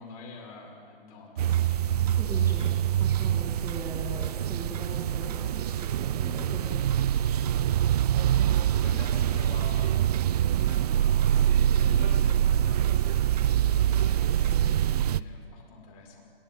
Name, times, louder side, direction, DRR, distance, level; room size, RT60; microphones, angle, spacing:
voice 1, 0.0-2.2 7.4-7.8 8.8-10.3 10.5-16.2, left 3 dB, 40° left, 0 dB, 6.0 m, -47 dB
sound 1, 1.4-15.2, right 10 dB, 40° right, 0.5 m, -25 dB
voice 2, 2.2-6.9, right 1 dB, 10° right, -1 dB, 2.5 m, -40 dB
30.0 x 29.0 x 4.1 m, 2.4 s
figure-of-eight pair, 120°, 30 cm